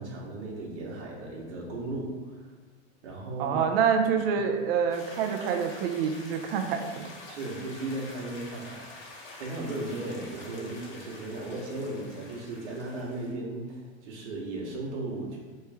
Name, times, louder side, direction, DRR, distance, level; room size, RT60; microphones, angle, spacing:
voice 1, 0.0-2.5 3.0-3.6 7.3-15.4, right 2 dB, 80° right, -3 dB, 1.2 m, -36 dB
voice 2, 3.4-7.1, right 7 dB, 60° right, 4 dB, 0.6 m, -27 dB
sound 1, 4.9-13.3, left 2 dB, 55° left, 1.2 m, -47 dB
4.5 x 3.2 x 3.4 m, 1.4 s
supercardioid pair, 155°, 34 cm